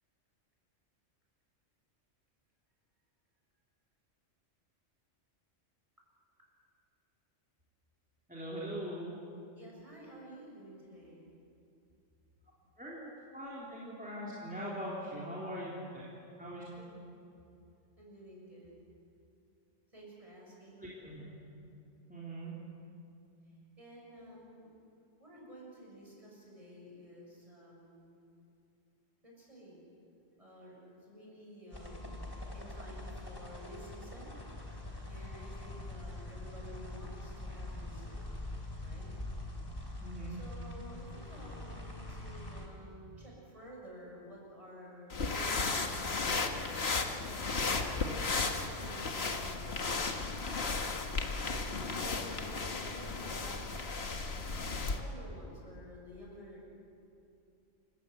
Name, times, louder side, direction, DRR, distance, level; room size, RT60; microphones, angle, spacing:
voice 1, 8.3-9.2 12.8-16.0 16.4-16.6 20.8-21.4 22.1-22.5 40.0-40.4, equal, 5° right, -7 dB, 3.6 m, -41 dB
voice 2, 9.6-11.3 16.7-17.1 18.0-18.8 19.9-20.8 23.8-24.7 25.2-28.1 29.2-29.8 30.4-30.8 31.1-34.3 35.1-38.2 38.8-39.1 40.3-46.9 47.6-50.1 51.3-53.7 54.9-56.7, equal, 25° right, -3 dB, 7.0 m, -51 dB
sound 1, 31.7-42.7, left 2 dB, 20° left, 3.0 m, -44 dB
sound 2, 45.1-55.0, left 4 dB, 55° left, 1.7 m, -34 dB
28.0 x 15.5 x 9.4 m, 2.7 s
omnidirectional pair, 1.3 m